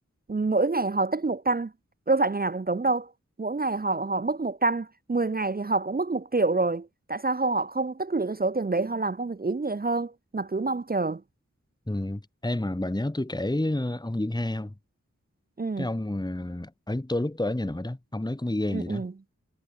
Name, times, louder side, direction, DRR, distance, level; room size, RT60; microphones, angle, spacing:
voice 1, 0.3-1.7 2.1-3.1 3.4-11.2 15.6-15.9 18.7-19.1, right 3 dB, 30° right, 0.6 m, -27 dB
voice 2, 11.9-14.7 15.8-19.1, left 1 dB, 15° left, 1.5 m, -29 dB
wide cardioid pair, 65°, 30 cm